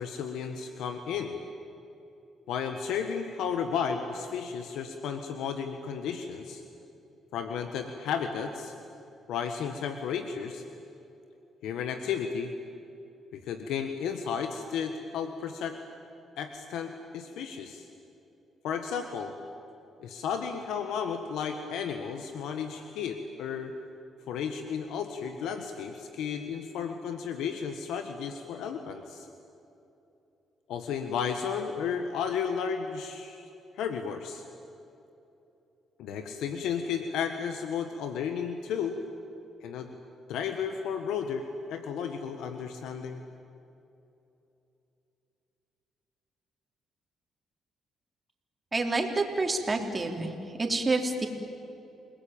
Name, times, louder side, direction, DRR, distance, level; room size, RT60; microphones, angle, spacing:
voice 1, 0.0-1.4 2.5-6.6 7.3-8.7 9.3-10.6 11.6-12.5 13.3-15.8 16.4-17.9 18.6-19.3 20.0-23.7 24.3-29.3 30.7-33.4 33.7-34.4 36.0-39.0 39.6-40.0 40.3-43.2, left 7 dB, 85° left, 6 dB, 1.6 m, -33 dB
voice 2, 48.7-50.3 50.6-51.3, right 3 dB, 25° right, 3 dB, 3.6 m, -28 dB
29.0 x 20.0 x 9.0 m, 2.9 s
cardioid pair, 90°, 0 cm